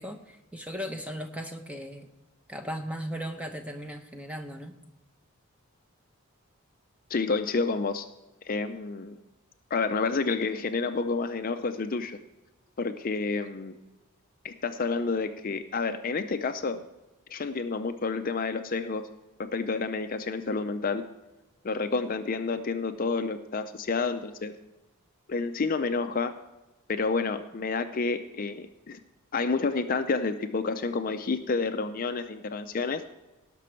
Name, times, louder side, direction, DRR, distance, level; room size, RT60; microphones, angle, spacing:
voice 1, 0.0-2.1 2.5-4.7, equal, 5° right, 5 dB, 0.8 m, -37 dB
voice 2, 7.1-8.1 8.5-9.2 9.7-12.2 12.8-13.8 14.4-16.8 17.3-19.1 19.4-21.1 21.6-24.5 25.3-26.3 26.9-29.0 29.3-33.0, left 4 dB, 40° left, 9 dB, 0.5 m, -29 dB
18.0 x 6.1 x 4.5 m, 1.1 s
head